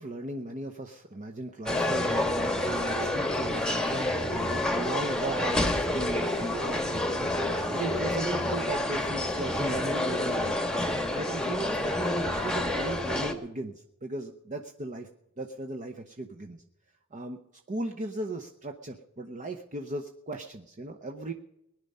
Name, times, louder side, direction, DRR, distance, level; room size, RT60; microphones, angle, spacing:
voice 1, 0.0-10.7 11.1-15.1 15.4-16.6 17.1-17.4 17.7-21.3, right 2 dB, 35° right, 3 dB, 0.8 m, -37 dB
sound 1, 1.7-13.3, left 1 dB, 5° left, 1.3 m, -28 dB
19.5 x 10.5 x 5.5 m, 0.85 s
head